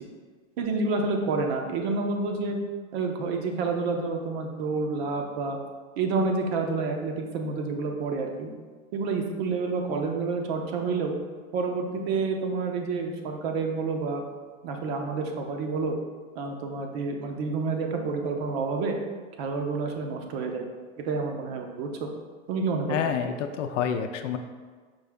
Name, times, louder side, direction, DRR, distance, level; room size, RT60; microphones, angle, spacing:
voice 1, 0.6-2.6 2.9-5.6 6.0-8.5 8.9-11.1 11.5-14.2 14.6-16.0 16.4-19.0 19.4-20.7 21.0-22.1 22.5-23.0, right 4 dB, 55° right, 3 dB, 0.8 m, -29 dB
voice 2, 22.9-24.4, left 8 dB, 80° left, 7 dB, 0.6 m, -28 dB
5.3 x 2.7 x 3.5 m, 1.5 s
supercardioid pair, 135°, 36 cm